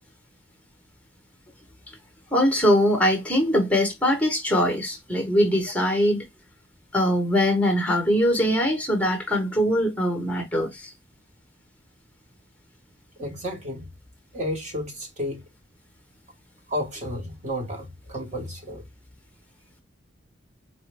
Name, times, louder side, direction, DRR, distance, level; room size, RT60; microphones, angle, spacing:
voice 1, 2.3-6.2 6.9-10.9, equal, 5° left, 0.9 m, -22 dB
voice 2, 13.2-13.9 14.3-15.4 16.7-18.8, equal, 35° right, 1.1 m, -32 dB
4.1 x 2.1 x 3.2 m
head